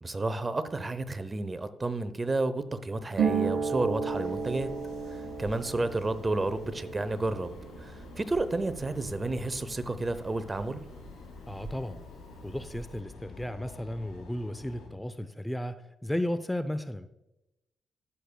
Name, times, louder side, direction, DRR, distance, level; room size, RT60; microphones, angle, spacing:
voice 1, 0.0-4.7 5.1-10.8, right 2 dB, 30° right, 13 dB, 0.8 m, -31 dB
Harp, 3.1-10.6 10.9-12.0 12.3-12.9, right 6 dB, 60° right, 1.0 m, -35 dB
sound 1, 4.0-14.9, left 3 dB, 90° left, 2.5 m, -48 dB
voice 2, 11.5-12.0 12.4-17.1, left 1 dB, 10° left, 11 dB, 0.6 m, -34 dB
15.5 x 6.7 x 2.3 m, 0.91 s
supercardioid pair, 50°, 0 cm